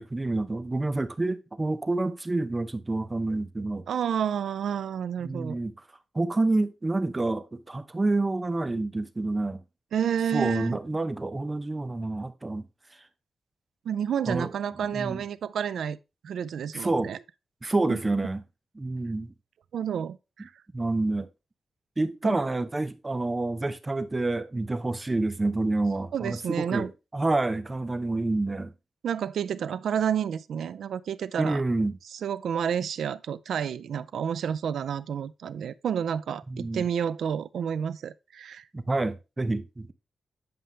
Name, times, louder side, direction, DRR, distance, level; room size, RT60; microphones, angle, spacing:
voice 1, 0.0-3.8 5.2-5.7 6.1-9.6 10.3-12.7 14.3-14.5 14.9-15.2 16.7-17.1 17.6-18.4 18.8-19.3 20.7-21.3 22.0-28.7 31.4-32.0 36.5-36.8 38.7-39.9, right 2 dB, 20° right, 0.7 m, -28 dB
voice 2, 3.9-5.6 9.9-10.8 13.9-16.0 16.2-17.2 17.9-18.0 19.7-20.5 22.2-22.4 26.1-26.9 29.0-31.6 32.1-38.7, right 8 dB, 85° right, 0.4 m, -30 dB
9.5 x 5.6 x 3.3 m
cardioid pair, 100°, 0 cm